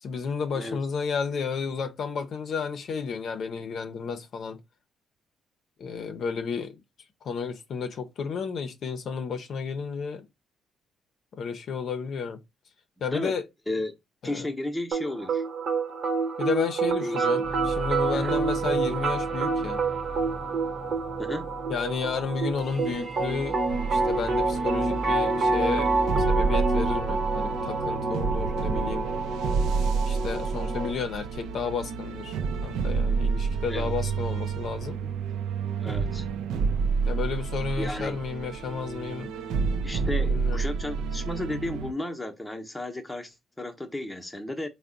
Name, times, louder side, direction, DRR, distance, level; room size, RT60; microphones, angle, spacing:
voice 1, 0.0-4.6 5.8-6.8 7.2-10.2 11.4-12.4 13.0-13.4 14.2-14.5 16.4-19.8 21.7-23.6 23.9-25.9 26.3-29.1 30.1-32.4 32.6-35.1 37.1-39.3 40.2-40.6, left 5 dB, 60° left, 0.5 m, -32 dB
voice 2, 14.2-15.4 17.0-17.4 18.1-18.3 21.2-21.5 33.7-34.1 35.8-36.3 37.7-38.2 39.8-44.7, left 1 dB, 10° left, 0.7 m, -33 dB
sound 1, 14.9-30.9, right 4 dB, 55° right, 1.0 m, -28 dB
sound 2, 17.4-26.7, right 2 dB, 25° right, 0.6 m, -38 dB
sound 3, 23.7-41.9, right 5 dB, 85° right, 0.4 m, -29 dB
3.5 x 2.1 x 3.7 m
cardioid pair, 90°, 0 cm